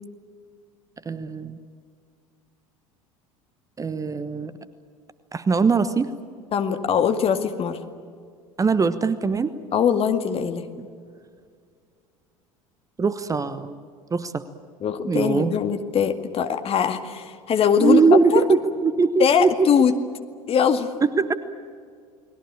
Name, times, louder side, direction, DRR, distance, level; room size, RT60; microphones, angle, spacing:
voice 1, 1.0-1.6 3.8-4.5 5.3-6.1 8.6-9.5 10.8-10.9 13.0-13.8 14.1-14.4 15.1-15.6 17.8-19.7 21.0-21.3, right 4 dB, 20° right, 13 dB, 1.1 m, -21 dB
voice 2, 6.5-7.8 9.7-10.6 14.8-18.0 18.3-18.4 19.2-19.9 20.5-20.9, left 7 dB, 30° left, 7 dB, 2.0 m, -21 dB
30.0 x 20.5 x 8.7 m, 2.1 s
figure-of-eight pair, 70°, 18 cm